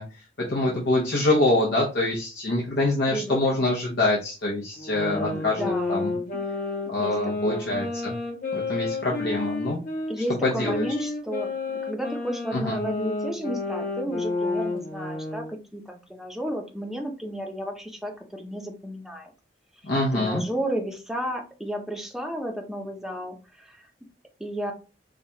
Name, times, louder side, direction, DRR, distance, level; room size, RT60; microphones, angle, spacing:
voice 1, 0.0-6.1 6.9-8.1 8.5-9.8 10.4-10.9 12.5-12.8 19.8-20.4, left 2 dB, 70° left, -3 dB, 0.8 m, -25 dB
voice 2, 3.1-3.7 5.1-6.4 7.0-7.8 10.1-19.3 20.1-23.9 24.4-24.7, equal, ahead, 2 dB, 0.6 m, -33 dB
sound 1, 4.7-10.1 10.6-15.5, left 3 dB, 50° left, 1.2 m, -30 dB
4.7 x 2.3 x 2.8 m, 0.33 s
head